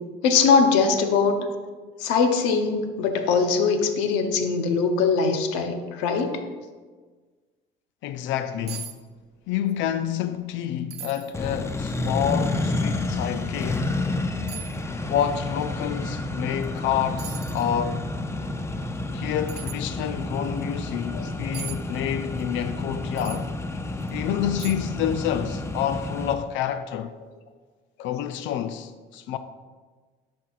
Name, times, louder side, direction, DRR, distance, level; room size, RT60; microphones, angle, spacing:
voice 1, 0.2-1.5 2.0-6.4 21.1-21.3 28.0-28.1, left 5 dB, 85° left, 0.8 m, -22 dB
voice 2, 8.0-9.0 9.5-14.1 15.0-18.1 19.1-23.5 24.1-27.1 28.0-29.4, left 10 dB, 65° left, 0.4 m, -28 dB
sound 1, 8.3-8.4 8.7-9.0 9.2-9.8 10.2-10.3 10.9-11.3 12.0-12.1 13.6-13.7 14.5-14.8 16.6-16.8 17.2-17.7 19.5-19.8 21.5-21.8 23.2-23.4 24.0-24.1 24.6-25.0 25.3-25.4, right 10 dB, 50° right, 0.6 m, -39 dB
Accelerating revving vroom, 11.3-26.3, left 2 dB, 15° left, 0.5 m, -30 dB
11.5 x 4.3 x 2.4 m
supercardioid pair, 90°, 21 cm